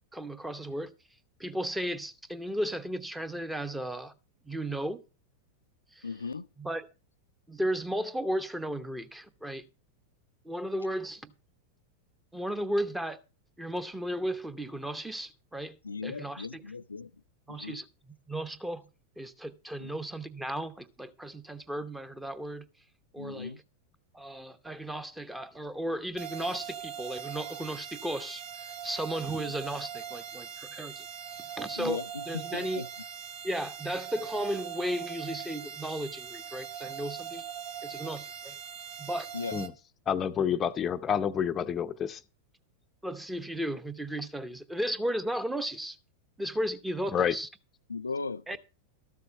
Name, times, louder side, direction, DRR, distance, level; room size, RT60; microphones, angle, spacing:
voice 1, 0.1-0.9 1.4-4.1 4.4-5.0 6.0-6.1 6.6-6.8 7.5-9.6 10.4-11.2 12.3-13.2 13.6-15.7 16.0-16.6 17.5-17.8 18.3-18.9 19.2-22.6 23.1-23.5 24.1-28.4 28.8-31.1 31.3-32.0 32.3-32.8 33.4-37.4 37.8-38.6 39.0-39.3 43.0-46.0 46.4-47.5 48.5-48.6, right 1 dB, 5° right, 0.9 m, -34 dB
voice 2, 6.0-6.5 15.8-17.1 17.5-17.8 19.8-19.9 23.2-23.6 29.4-29.5 31.8-32.9 39.3-39.6 47.9-48.6, left 4 dB, 75° left, 0.5 m, -37 dB
sound 1, 26.2-39.7, right 8 dB, 50° right, 1.2 m, -41 dB
voice 3, 40.1-42.2 47.1-47.4, left 8 dB, 25° left, 0.7 m, -28 dB
13.0 x 7.0 x 5.4 m
figure-of-eight pair, 90°, 0 cm